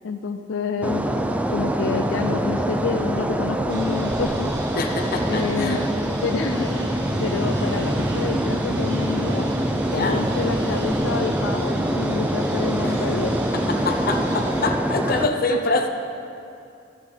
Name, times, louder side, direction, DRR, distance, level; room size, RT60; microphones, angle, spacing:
voice 1, 0.0-1.1 1.5-4.5 5.3-5.8 6.2-9.5 10.0-13.5, left 4 dB, 85° left, 7 dB, 0.4 m, -28 dB
sound 1, 0.8-15.3, right 1 dB, 10° right, 0.4 m, -24 dB
sound 2, 3.7-14.7, right 1 dB, 70° right, 1.4 m, -38 dB
voice 2, 4.7-5.9 9.9-10.2 12.8-13.0 13.5-15.9, left 3 dB, 50° left, 4 dB, 0.7 m, -25 dB
14.0 x 8.2 x 3.4 m, 2.5 s
head